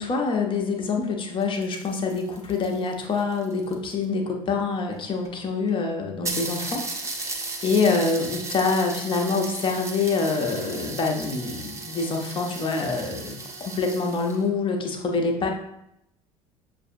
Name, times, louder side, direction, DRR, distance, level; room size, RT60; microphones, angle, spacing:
voice 1, 0.0-6.9 7.1-15.5, left 4 dB, 30° left, 2 dB, 0.8 m, -26 dB
sound 1, 1.3-4.0 4.9-5.0 5.3-5.4 5.7-5.8 6.3-14.4, right 3 dB, 15° right, 0.7 m, -35 dB
6.4 x 2.6 x 2.5 m, 0.80 s
figure-of-eight pair, 65°, 18 cm